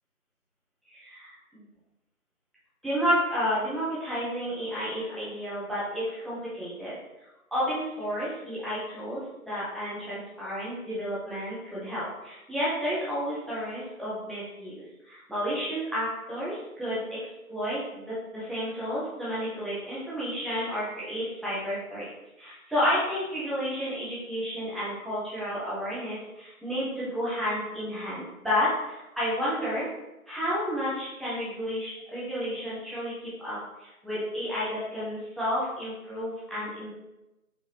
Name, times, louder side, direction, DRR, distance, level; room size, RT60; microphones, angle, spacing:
voice 1, 0.9-1.6 2.8-7.0 7.5-22.1 22.4-29.9 30.3-36.9, equal, ahead, -10 dB, 0.6 m, -31 dB
4.6 x 2.4 x 2.9 m, 0.97 s
figure-of-eight pair, 170°, 44 cm